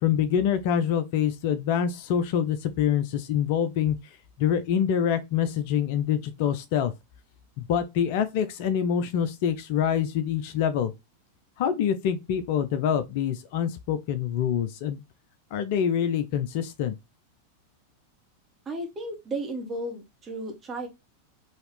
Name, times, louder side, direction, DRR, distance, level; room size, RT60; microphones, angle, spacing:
voice 1, 0.0-4.0 4.4-6.9 7.6-10.9 11.6-15.0 15.5-17.0, left 8 dB, 50° left, 0.5 m, -25 dB
voice 2, 18.6-20.9, right 2 dB, 20° right, 1.4 m, -34 dB
4.0 x 2.8 x 3.2 m
figure-of-eight pair, 90°, 0 cm